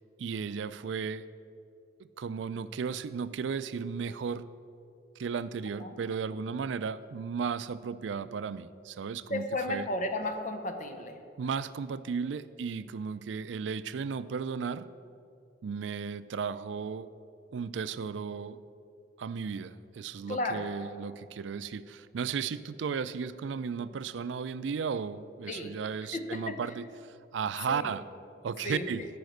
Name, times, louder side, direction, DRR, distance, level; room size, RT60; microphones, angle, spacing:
voice 1, 0.2-1.2 2.0-4.5 5.2-9.9 11.4-14.9 15.6-17.1 17.5-18.6 19.2-26.9 27.3-28.0 28.4-29.0, right 6 dB, 75° right, 15 dB, 0.4 m, -35 dB
voice 2, 9.3-11.2 20.3-20.7 25.5-25.7 26.1-26.6 27.7-28.0 28.6-29.1, left 2 dB, 45° left, 6 dB, 0.9 m, -34 dB
14.0 x 5.1 x 6.5 m, 2.5 s
head